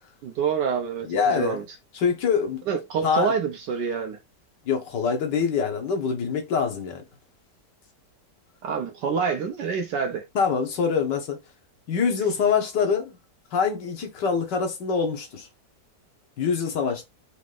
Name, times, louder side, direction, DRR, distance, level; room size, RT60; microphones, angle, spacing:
voice 1, 0.2-1.6 2.7-4.2 8.6-10.2, right 6 dB, 80° right, 1.3 m, -27 dB
voice 2, 1.0-1.6 1.9-2.6 3.0-3.3 4.7-7.0 10.3-11.4 11.9-13.2 13.5-15.5 16.4-17.0, left 6 dB, 85° left, 1.8 m, -24 dB
5.0 x 2.5 x 3.3 m
omnidirectional pair, 1.8 m